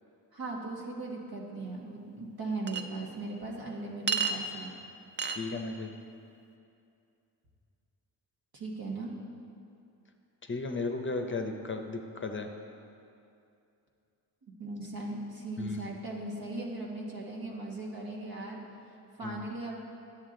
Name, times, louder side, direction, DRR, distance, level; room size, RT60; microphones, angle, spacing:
voice 1, 0.3-4.8 8.5-9.1 14.6-18.6 19.2-19.9, right 2 dB, 65° right, -1 dB, 1.5 m, -38 dB
Chink clink, 2.7-2.8 4.1-4.4 5.2-5.4, right 5 dB, 30° right, 0.5 m, -29 dB
voice 2, 5.3-5.9 10.4-12.5 15.6-15.8 19.2-19.4, left 3 dB, 30° left, 5 dB, 0.7 m, -35 dB
10.0 x 7.4 x 3.8 m, 2.6 s
cardioid pair, 80°, 39 cm